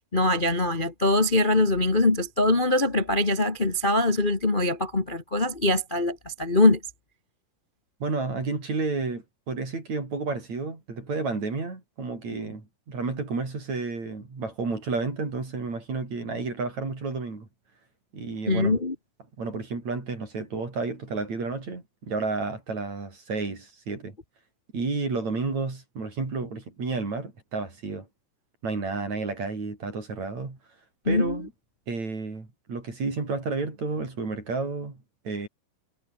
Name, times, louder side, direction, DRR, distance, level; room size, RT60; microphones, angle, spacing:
voice 1, 0.1-6.8 18.5-18.9 31.0-31.4, left 2 dB, 75° left, 0.4 m, -23 dB
voice 2, 8.0-17.5 18.1-18.8 19.4-24.2 24.7-28.1 28.6-30.6 31.1-31.5 31.9-35.5, right 3 dB, 45° right, 7.0 m, -31 dB
omnidirectional pair, 4.3 m